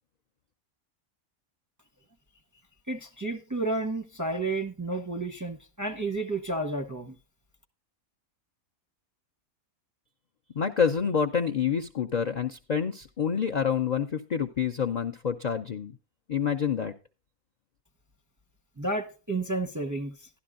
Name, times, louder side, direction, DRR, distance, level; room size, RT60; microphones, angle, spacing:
voice 1, 2.9-7.2 18.8-20.3, right 2 dB, 20° right, 0.4 m, -31 dB
voice 2, 10.5-15.9 16.3-16.9, left 7 dB, 75° left, 0.4 m, -27 dB
12.0 x 12.0 x 2.5 m
omnidirectional pair, 1.5 m